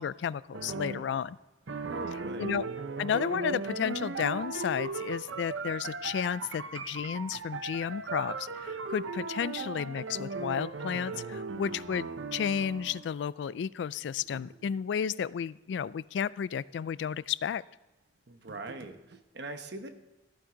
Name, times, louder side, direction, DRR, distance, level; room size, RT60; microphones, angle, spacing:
voice 1, 0.0-1.4 2.4-2.6 3.0-17.6, left 7 dB, 70° left, 20 dB, 0.3 m, -32 dB
sound 1, 0.5-1.2 1.7-13.1 14.2-14.7 18.5-19.2, right 4 dB, 85° right, 0.7 m, -38 dB
voice 2, 1.9-2.5 18.3-19.9, right 2 dB, 60° right, 7 dB, 1.1 m, -42 dB
14.0 x 9.5 x 3.8 m, 1.1 s
head